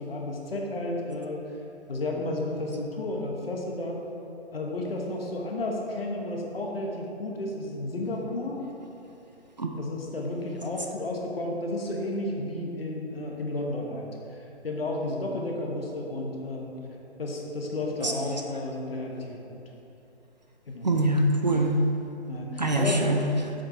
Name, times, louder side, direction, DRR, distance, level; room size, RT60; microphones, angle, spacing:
voice 1, 0.0-1.4 1.9-4.0 4.5-8.6 9.8-14.4 14.6-16.7 17.2-19.6 20.7-21.0 22.3-23.0, left 2 dB, 60° left, 0 dB, 1.3 m, -32 dB
voice 2, 20.8-21.8 22.6-23.5, right 1 dB, 40° right, 2 dB, 0.5 m, -24 dB
7.4 x 5.2 x 4.4 m, 2.8 s
hypercardioid pair, 170°, 34 cm